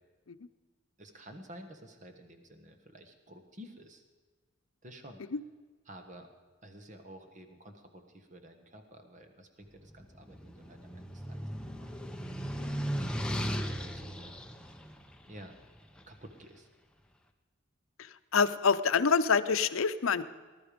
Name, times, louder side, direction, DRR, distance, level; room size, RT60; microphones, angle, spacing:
voice 1, 1.0-4.0 4.8-5.2 5.9-6.3 6.6-11.5 11.8-11.9 13.1-14.6 15.3-15.5 16.1-16.7, equal, 35° right, 6 dB, 1.4 m, -51 dB
sound 1, 9.9-16.2, equal, 5° left, 0.8 m, -37 dB
voice 2, 18.0-20.2, left 5 dB, 80° left, 13 dB, 0.6 m, -26 dB
20.0 x 12.0 x 5.2 m, 1.4 s
head